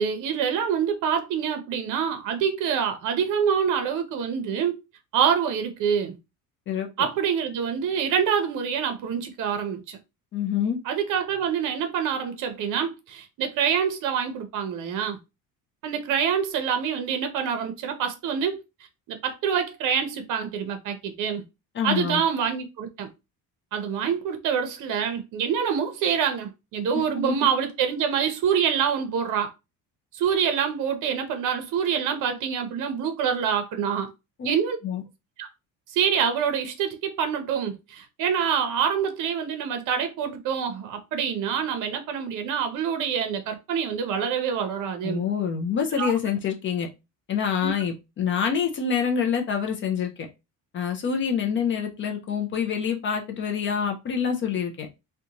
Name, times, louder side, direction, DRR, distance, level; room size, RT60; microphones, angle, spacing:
voice 1, 0.0-4.7 5.1-6.2 7.0-10.0 10.9-15.2 15.8-18.6 19.1-21.4 21.8-23.1 23.7-29.5 30.1-34.1 34.4-34.8 35.4-35.5 35.9-45.2 46.0-46.1 47.6-47.7, right 7 dB, 60° right, 0.7 m, -26 dB
voice 2, 6.7-7.1 10.3-10.8 21.7-22.2 26.9-27.3 34.4-34.6 34.8-35.0 45.0-46.9 47.3-50.1 50.7-54.9, left 7 dB, 35° left, 0.4 m, -26 dB
2.5 x 2.2 x 2.8 m
cardioid pair, 160°, 36 cm